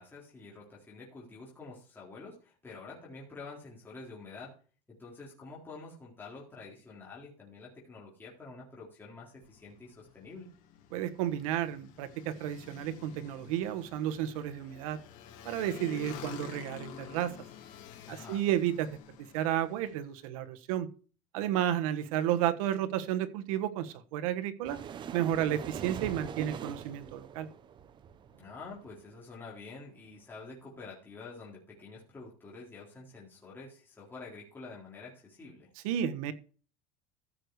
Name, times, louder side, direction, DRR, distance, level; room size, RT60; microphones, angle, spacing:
voice 1, 0.0-4.5 5.0-10.5 18.1-18.5 28.4-35.7, left 3 dB, 10° left, -5 dB, 3.9 m, -48 dB
Motorcycle, 9.4-20.1, left 10 dB, 50° left, 3.9 m, -49 dB
voice 2, 10.9-15.0 15.4-17.3 18.1-18.9 19.3-20.9 21.3-24.8 25.1-27.5 35.8-36.3, right 11 dB, 85° right, 11 dB, 1.4 m, -32 dB
sound 1, 24.6-29.0, right 8 dB, 25° right, 0.8 m, -42 dB
14.5 x 6.6 x 4.8 m, 0.37 s
cardioid pair, 160°, 17 cm